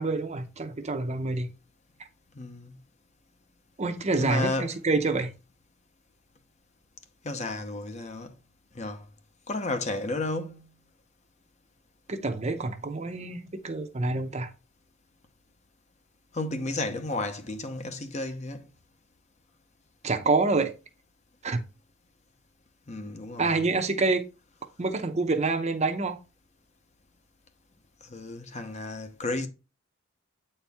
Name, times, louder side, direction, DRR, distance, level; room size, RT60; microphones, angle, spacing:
voice 1, 0.0-1.5 3.8-5.3 12.1-14.5 20.0-20.7 21.4-21.6 23.4-24.3 24.8-26.2, right 3 dB, 35° right, 0.7 m, -27 dB
voice 2, 2.3-2.8 4.2-4.7 7.2-8.3 8.7-9.1 9.5-10.7 16.3-18.6 22.9-23.6 28.0-29.5, left 2 dB, 35° left, 0.8 m, -32 dB
8.1 x 4.4 x 3.4 m
head